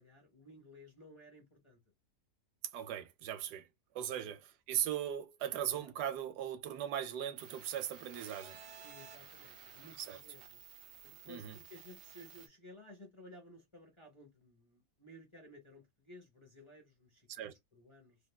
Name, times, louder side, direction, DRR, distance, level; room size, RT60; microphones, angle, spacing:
voice 1, 0.0-1.8 4.2-4.4 5.7-5.9 8.8-10.6 11.0-18.2, left 1 dB, 25° left, 0.7 m, -56 dB
voice 2, 2.7-3.6 3.9-4.4 4.7-8.6 10.1-10.2 11.3-11.6 17.3-17.5, right 10 dB, 80° right, 1.2 m, -38 dB
sound 1, 7.4-12.5, right 7 dB, 50° right, 1.0 m, -54 dB
3.3 x 2.8 x 2.2 m
omnidirectional pair, 1.7 m